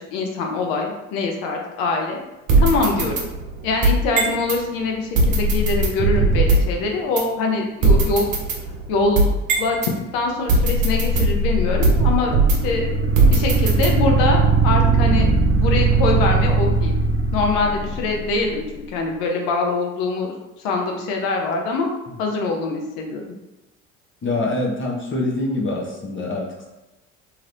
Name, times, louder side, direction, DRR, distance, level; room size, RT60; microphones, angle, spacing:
voice 1, 0.0-2.2 2.6-3.3 3.6-8.3 8.9-12.4 12.6-12.9 13.3-17.0 17.3-21.9 22.2-23.2, left 3 dB, 70° left, 1 dB, 0.8 m, -24 dB
sound 1, 2.5-4.6 5.2-6.8 7.2-7.3 7.8-9.9 10.5-12.8 13.2-14.2, right 2 dB, 50° right, 0.9 m, -19 dB
sound 2, 12.3-18.4, right 3 dB, 30° right, 0.6 m, -19 dB
voice 2, 24.2-26.6, left 2 dB, 30° left, -2 dB, 0.8 m, -25 dB
3.1 x 2.9 x 2.5 m, 1.0 s
hypercardioid pair, 65°, 38 cm